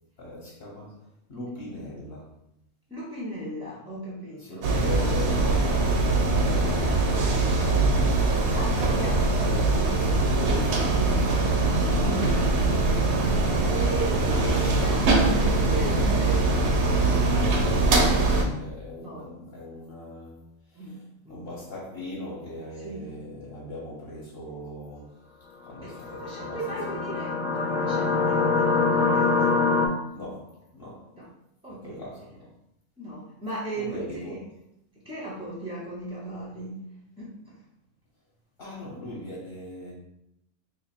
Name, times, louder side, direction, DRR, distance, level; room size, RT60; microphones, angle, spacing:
voice 1, 0.2-2.3 4.4-5.9 6.2-7.0 8.0-8.3 9.9-10.3 10.6-11.2 17.6-21.0 21.3-25.2 25.6-27.0 30.1-31.1 31.7-32.5 33.7-34.4 38.6-39.9, left 1 dB, 50° left, -5 dB, 1.2 m, -40 dB
voice 2, 2.9-5.4 8.5-11.4 13.7-17.2 19.0-19.2 20.7-21.0 21.2-21.5 22.8-23.0 25.8-29.7 31.2-31.3 31.6-32.0 33.0-34.4 35.0-36.8 37.2-37.6, right 1 dB, 5° right, -5 dB, 0.5 m, -37 dB
sound 1, 4.6-18.4, right 2 dB, 65° right, 0.9 m, -22 dB
sound 2, 25.9-29.9, left 4 dB, 85° left, 1.0 m, -24 dB
2.9 x 2.8 x 4.2 m, 0.79 s
omnidirectional pair, 1.4 m